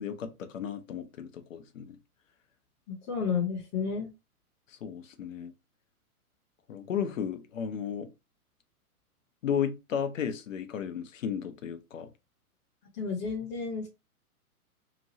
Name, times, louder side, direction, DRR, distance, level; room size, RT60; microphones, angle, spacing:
voice 1, 0.0-2.0 4.7-5.5 6.7-8.1 9.4-12.1, left 8 dB, 60° left, 0.7 m, -34 dB
voice 2, 2.9-4.1 13.0-13.9, left 5 dB, 20° left, 0.9 m, -31 dB
3.0 x 2.5 x 2.7 m
figure-of-eight pair, 120°, 45 cm